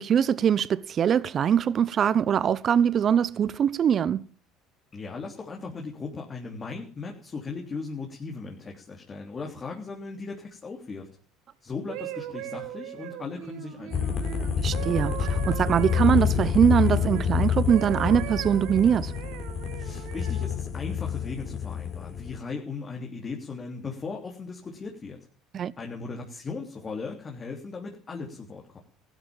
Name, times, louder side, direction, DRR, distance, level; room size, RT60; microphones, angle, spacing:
voice 1, 0.0-4.2 14.6-19.1 25.5-25.7, right 8 dB, 45° right, 0.8 m, -23 dB
voice 2, 4.9-11.1 11.6-14.1 19.8-25.2 25.8-28.8, left 4 dB, 30° left, 3.4 m, -37 dB
sound 1, 11.7-17.3 17.7-20.6 21.2-21.5, right 14 dB, 75° right, 1.6 m, -39 dB
sound 2, 13.9-22.4, left 7 dB, 45° left, 3.9 m, -28 dB
15.5 x 12.5 x 7.3 m
supercardioid pair, 90°, 0 cm